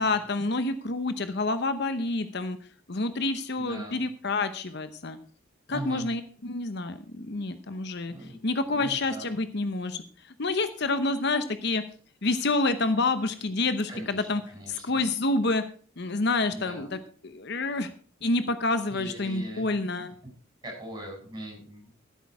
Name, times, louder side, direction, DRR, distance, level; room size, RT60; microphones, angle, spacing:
voice 1, 0.0-2.6 2.9-5.2 5.7-8.1 8.4-11.8 12.2-14.4 14.7-15.6 16.0-17.9 18.2-20.1, left 3 dB, 55° left, 11 dB, 0.9 m, -28 dB
voice 2, 3.6-4.0 5.7-6.1 8.0-8.4 8.7-9.3 13.9-15.0 16.5-16.9 18.9-19.7 20.6-21.9, right 1 dB, 20° right, -1 dB, 7.4 m, -40 dB
15.0 x 8.4 x 4.8 m, 0.44 s
head